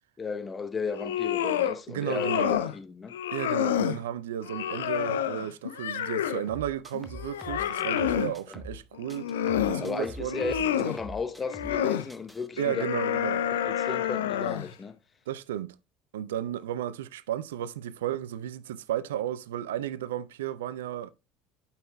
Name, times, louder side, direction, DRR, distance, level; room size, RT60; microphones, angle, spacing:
voice 1, 0.2-3.2 8.5-8.6 9.8-12.9 13.5-15.0, left 5 dB, 25° left, 0.8 m, -35 dB
sound 1, 0.9-1.8 2.1-2.7 3.1-4.0 4.4-6.5 6.9-8.3 9.0-9.9 10.2-11.0 11.5-12.1 12.6-14.7, left 10 dB, 75° left, 0.6 m, -29 dB
voice 2, 1.9-2.6 3.3-9.3 9.6-10.4 12.6-13.5 15.3-15.8 16.1-21.1, right 11 dB, 70° right, 0.4 m, -33 dB
sound 2, 6.5-8.8 9.1-11.8 12.1-12.5, left 1 dB, 5° right, 0.9 m, -44 dB
12.0 x 5.6 x 2.2 m
figure-of-eight pair, 65°, 0 cm